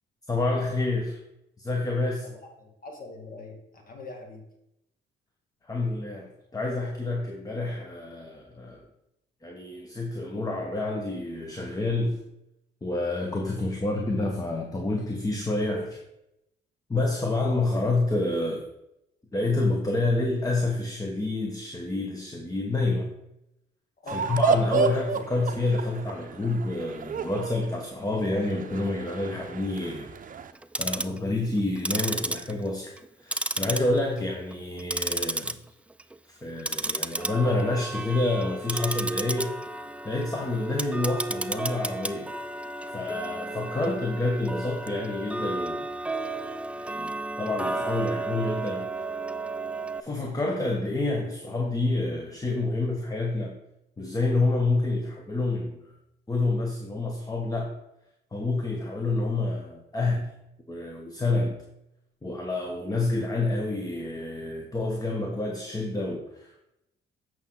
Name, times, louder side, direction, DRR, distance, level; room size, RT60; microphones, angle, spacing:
voice 1, 0.3-1.2 1.6-2.3 5.7-8.8 9.4-12.2 12.8-16.0 16.9-18.6 19.3-23.1 24.1-30.1 30.8-33.0 33.2-35.6 36.3-39.6 40.0-42.3 42.9-45.8 46.8-48.9 50.0-53.6 54.0-55.8 56.3-57.7 58.3-60.3 60.7-61.6 62.2-66.6, left 2 dB, 15° left, 1 dB, 1.2 m, -28 dB
voice 2, 2.3-3.6 3.9-4.4 24.0-24.4 24.8-24.9, left 3 dB, 45° left, 2 dB, 2.1 m, -42 dB
sound 1, 24.1-30.5, right 6 dB, 45° right, 0.7 m, -31 dB
Tick-tock, 30.6-31.2 31.8-33.1 33.3-34.2 34.5-35.5 35.9-36.2 36.6-50.0, right 2 dB, 5° right, 0.4 m, -32 dB
8.3 x 6.2 x 3.9 m, 0.84 s
cardioid pair, 90°, 20 cm